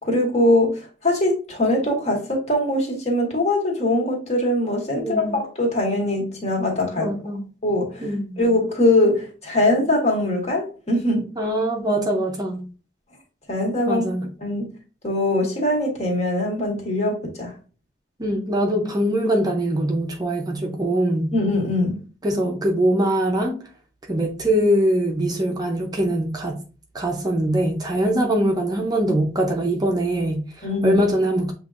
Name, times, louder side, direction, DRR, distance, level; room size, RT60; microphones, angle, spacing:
voice 1, 0.0-7.1 7.6-8.0 8.4-11.3 13.5-14.0 14.4-14.7 15.0-17.5 21.3-22.0 30.6-31.0, left 1 dB, 40° left, 1.6 m, -22 dB
voice 2, 5.0-5.4 7.0-7.5 8.0-8.4 11.4-12.7 13.9-14.3 18.2-21.3 22.2-23.6 24.1-26.6 26.9-31.5, right 1 dB, 20° right, 0.6 m, -22 dB
7.3 x 2.9 x 2.5 m
head